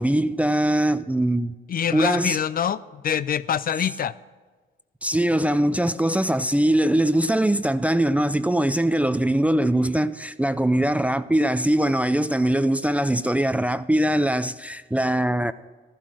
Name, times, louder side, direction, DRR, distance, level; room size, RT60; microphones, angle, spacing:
voice 1, 0.0-1.5 1.9-2.4 5.0-15.5, right 1 dB, 5° right, 0.4 m, -22 dB
voice 2, 1.7-4.1, left 8 dB, 45° left, 0.5 m, -25 dB
14.5 x 11.5 x 6.2 m
cardioid pair, 90°, 20 cm